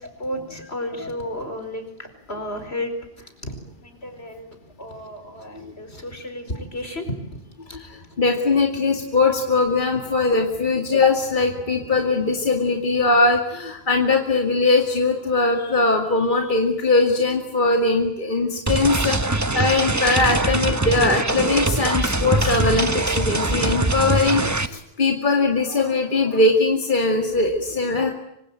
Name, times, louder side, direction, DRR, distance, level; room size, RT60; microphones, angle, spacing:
voice 1, 0.0-3.6 3.8-7.0 7.3-7.4 7.7-7.8 9.9-10.0, left 1 dB, 75° left, 7 dB, 5.2 m, -33 dB
voice 2, 7.7-28.1, left 3 dB, 50° left, 2 dB, 2.4 m, -21 dB
sound 1, 18.7-24.7, right 2 dB, 15° right, 1.0 m, -22 dB
25.5 x 25.5 x 9.0 m, 0.79 s
omnidirectional pair, 1.1 m